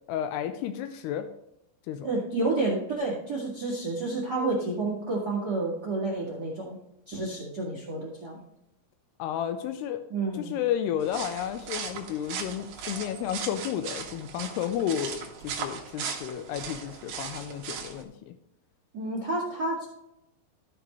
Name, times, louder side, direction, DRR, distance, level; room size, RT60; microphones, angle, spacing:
voice 1, 0.1-1.3 1.9-2.1 9.2-10.0 10.3-18.3, left 10 dB, 90° left, 8 dB, 2.3 m, -32 dB
voice 2, 2.0-6.8 7.1-8.4 10.1-10.5 18.9-19.9, right 2 dB, 90° right, -3 dB, 0.8 m, -30 dB
sound 1, 11.0-18.0, right 6 dB, 65° right, 2.3 m, -38 dB
14.5 x 6.1 x 3.2 m, 0.83 s
omnidirectional pair, 5.4 m